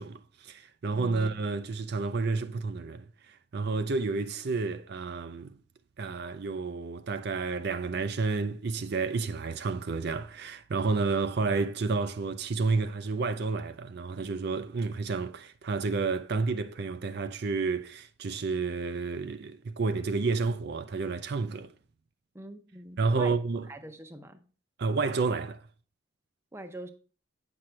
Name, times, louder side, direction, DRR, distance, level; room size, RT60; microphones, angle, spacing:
voice 1, 0.0-5.6 6.0-21.7 23.0-23.7 24.8-25.6, right 4 dB, 55° right, 0.4 m, -30 dB
voice 2, 22.3-23.3 23.7-24.4 26.5-26.9, right 1 dB, 15° right, 0.6 m, -43 dB
8.7 x 5.9 x 3.2 m
head